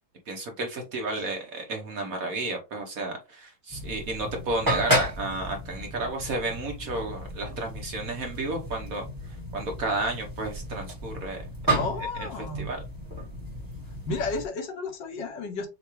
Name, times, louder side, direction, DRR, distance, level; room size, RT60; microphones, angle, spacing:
voice 1, 0.3-9.0 9.5-11.4 12.6-12.8, right 2 dB, 55° right, 1.1 m, -32 dB
sound 1, 3.7-14.5, right 1 dB, 15° right, 1.0 m, -33 dB
voice 2, 11.6-12.7 14.1-15.7, left 3 dB, 70° left, 1.4 m, -32 dB
6.7 x 2.3 x 3.0 m
omnidirectional pair, 2.1 m